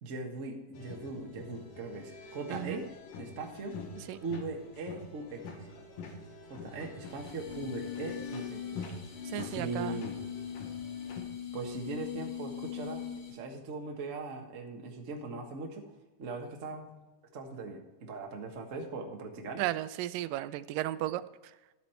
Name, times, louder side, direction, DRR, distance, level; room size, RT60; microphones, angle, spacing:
voice 1, 0.0-2.9 3.2-3.8 4.2-5.7 6.5-8.9 9.4-10.1 11.5-15.9 16.2-17.0 17.3-19.7, right 3 dB, 55° right, 2 dB, 0.8 m, -40 dB
sound 1, 0.7-11.2, left 4 dB, 80° left, 3.0 m, -46 dB
voice 2, 2.5-2.8 4.1-4.2 9.3-10.0 19.6-21.2, right 14 dB, 85° right, 15 dB, 2.2 m, -34 dB
sound 2, 7.0-13.5, left 9 dB, 35° left, 1.4 m, -41 dB
12.0 x 8.3 x 4.4 m, 1.2 s
omnidirectional pair, 3.9 m